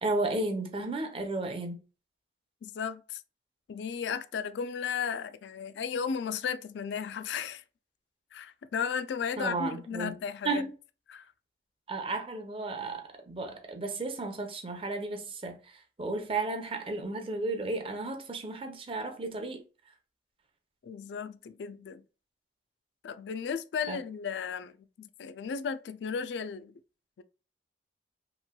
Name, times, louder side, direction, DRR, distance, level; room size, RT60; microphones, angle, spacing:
voice 1, 0.0-1.8 9.4-10.2 10.4-10.7 11.9-19.6 23.9-24.0, right 2 dB, 30° right, 0.6 m, -33 dB
voice 2, 2.6-3.2 3.7-7.6 8.3-10.6 11.1-11.3 20.8-22.0 23.0-26.7 27.2-27.3, left 6 dB, 80° left, 0.3 m, -35 dB
3.0 x 2.9 x 2.2 m
head